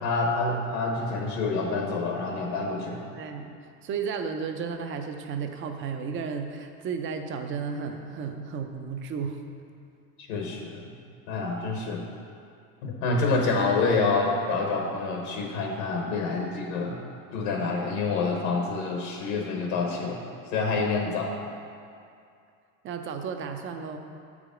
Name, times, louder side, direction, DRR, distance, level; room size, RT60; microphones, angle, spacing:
voice 1, 0.0-3.0 10.2-10.8 11.3-12.0 12.8-17.0 17.3-20.2 20.5-21.3, left 3 dB, 70° left, 0 dB, 1.1 m, -27 dB
voice 2, 3.1-3.5 3.8-9.4 21.1-21.2 22.8-24.0, right 6 dB, 30° right, 6 dB, 0.5 m, -33 dB
7.4 x 4.9 x 5.0 m, 2.4 s
supercardioid pair, 135°, 40 cm